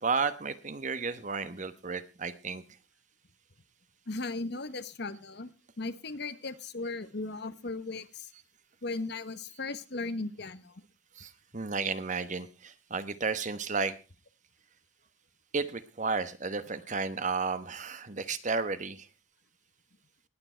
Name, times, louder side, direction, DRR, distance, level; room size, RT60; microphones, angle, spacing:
voice 1, 0.0-2.6 11.2-13.9 15.5-19.1, right 4 dB, 40° right, 12 dB, 1.1 m, -33 dB
voice 2, 4.1-8.3 8.8-10.8, left 3 dB, 60° left, 13 dB, 1.1 m, -37 dB
19.5 x 8.8 x 4.4 m, 0.32 s
head